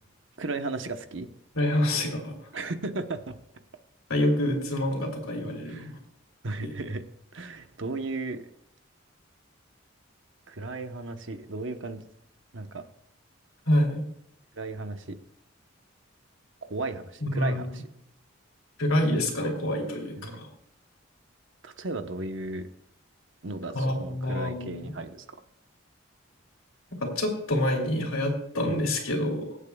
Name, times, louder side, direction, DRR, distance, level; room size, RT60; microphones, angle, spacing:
voice 1, 0.4-1.3 2.5-3.4 5.7-5.9 6.4-7.0 7.3-8.5 10.5-12.1 12.5-12.8 14.5-15.2 16.6-17.8 20.2-20.4 21.6-22.6 23.4-25.2 28.6-28.8, right 3 dB, 65° right, 7 dB, 1.0 m, -35 dB
voice 2, 1.5-2.3 4.1-6.0 6.6-6.7 13.7-14.0 17.2-17.8 18.8-20.5 23.7-24.9 26.9-29.6, left 1 dB, 90° left, 2 dB, 3.1 m, -27 dB
24.0 x 8.5 x 2.3 m, 0.76 s
head